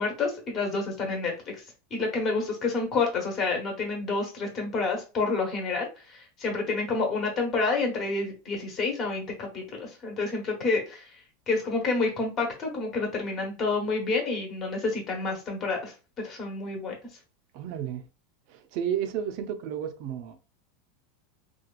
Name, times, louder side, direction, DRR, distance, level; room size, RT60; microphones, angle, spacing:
voice 1, 0.0-1.6 1.9-11.1 11.5-16.9, left 3 dB, 35° left, 1.1 m, -29 dB
voice 2, 17.5-18.1 18.5-20.4, right 9 dB, 55° right, 0.4 m, -32 dB
2.9 x 2.3 x 2.3 m
supercardioid pair, 135°, 0 cm